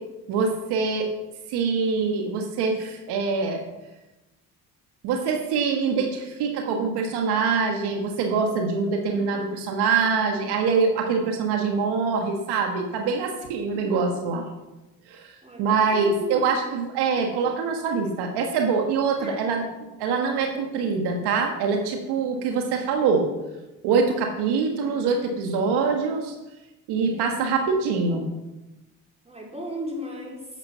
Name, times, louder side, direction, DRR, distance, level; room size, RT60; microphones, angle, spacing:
voice 1, 0.3-1.1 1.5-3.6 5.0-14.5 15.1-15.3 15.6-19.7 20.0-23.3 23.8-26.3 26.9-28.3, right 5 dB, 80° right, 3 dB, 1.7 m, -24 dB
voice 2, 9.1-9.6 13.7-14.1 15.4-16.4 19.2-19.5 24.8-25.1 27.1-27.5 29.2-30.5, equal, 15° right, -1 dB, 4.4 m, -38 dB
11.0 x 7.1 x 6.9 m, 1.0 s
supercardioid pair, 75°, 39 cm